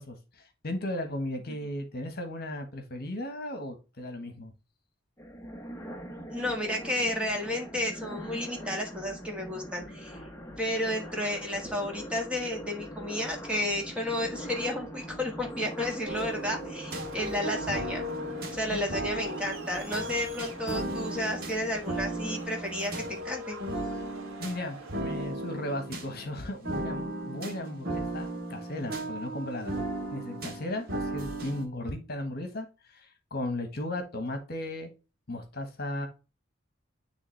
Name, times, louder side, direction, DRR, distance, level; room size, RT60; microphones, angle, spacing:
voice 1, 0.0-4.5 18.7-18.8 20.8-20.9 24.4-29.7 30.1-34.9 35.3-36.1, left 1 dB, 50° left, 6 dB, 1.3 m, -36 dB
sound 1, 5.2-22.4, equal, 15° left, 0.9 m, -42 dB
voice 2, 6.3-10.2 10.6-18.0 18.5-23.6, left 1 dB, 5° right, 1 dB, 1.6 m, -32 dB
sound 2, 16.1-31.7, right 1 dB, 50° right, 1.7 m, -36 dB
Crowd, 16.9-25.1, right 3 dB, 85° right, 1.9 m, -46 dB
9.6 x 3.4 x 3.3 m, 0.30 s
head